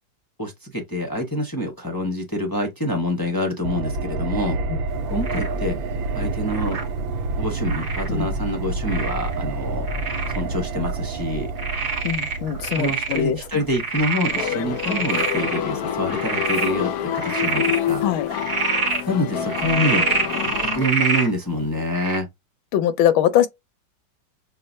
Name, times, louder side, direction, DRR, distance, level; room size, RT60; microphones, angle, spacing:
voice 1, 0.4-4.6 5.1-5.8 6.1-6.8 7.4-9.8 10.3-11.5 12.7-18.1 19.1-22.3, equal, 25° left, 0.4 m, -26 dB
sound 1, 3.6-15.5 15.8-15.9, right 3 dB, 75° right, 1.4 m, -28 dB
Frog, 5.2-5.6 6.5-6.9 7.6-8.1 8.9-9.3 9.9-10.4 10.9-11.0 11.6-13.2 13.5-15.6 16.1-16.7 17.1-17.8 18.3-19.0 19.5-21.3 21.9-22.2, right 4 dB, 40° right, 0.7 m, -26 dB
voice 2, 12.0-13.4 18.0-18.3 22.7-23.5, left 10 dB, 90° left, 1.5 m, -21 dB
sound 2, 14.3-20.9, left 9 dB, 70° left, 0.9 m, -27 dB
6.6 x 2.2 x 2.6 m
omnidirectional pair, 2.2 m